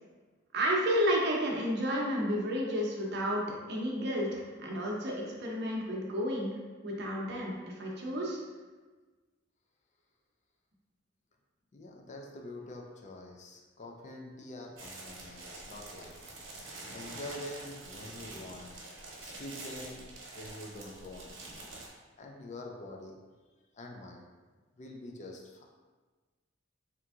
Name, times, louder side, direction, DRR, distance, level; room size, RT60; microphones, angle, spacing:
voice 1, 0.5-3.4 3.7-6.5 6.8-8.4, equal, 55° right, -2 dB, 0.7 m, -31 dB
voice 2, 11.7-21.4 22.2-23.2 23.7-24.2 24.8-25.7, left 1 dB, 35° left, 1 dB, 0.4 m, -46 dB
sound 1, 14.8-21.9, right 2 dB, 85° right, 1.0 m, -46 dB
3.5 x 3.0 x 3.5 m, 1.3 s
head